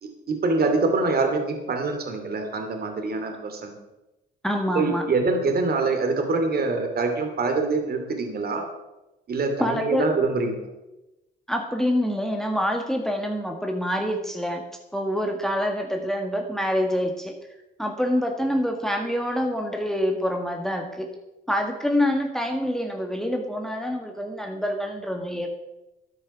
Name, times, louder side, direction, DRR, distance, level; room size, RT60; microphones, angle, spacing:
voice 1, 0.0-3.7 4.7-8.7 9.3-10.7, right 3 dB, 50° right, 5 dB, 2.6 m, -25 dB
voice 2, 4.4-5.1 9.6-10.1 11.5-14.6 14.9-17.3 17.8-21.1 21.5-25.5, equal, ahead, 2 dB, 1.7 m, -26 dB
12.5 x 9.0 x 6.0 m, 0.97 s
cardioid pair, 90°, 20 cm